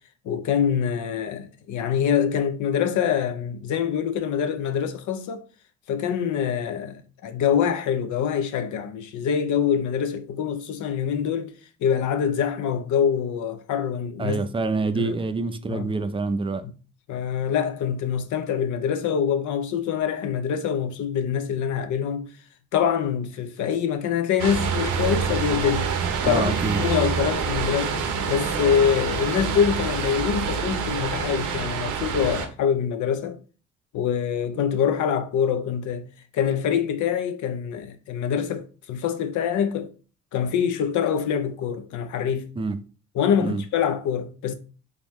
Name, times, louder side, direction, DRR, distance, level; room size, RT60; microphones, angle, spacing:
voice 1, 0.2-5.4 5.9-11.5 11.8-14.4 15.0-15.2 15.7-15.9 16.6-16.7 17.1-22.3 22.7-33.4 33.9-36.1 36.3-39.9 40.3-42.5 43.1-44.5, left 8 dB, 75° left, 0.6 m, -25 dB
voice 2, 14.2-16.6 26.2-26.8 42.6-42.8 43.4-43.6, right 3 dB, 20° right, 0.4 m, -26 dB
sound 1, 24.4-32.5, right 6 dB, 80° right, 0.8 m, -26 dB
3.8 x 3.1 x 3.0 m
cardioid pair, 90°, 30 cm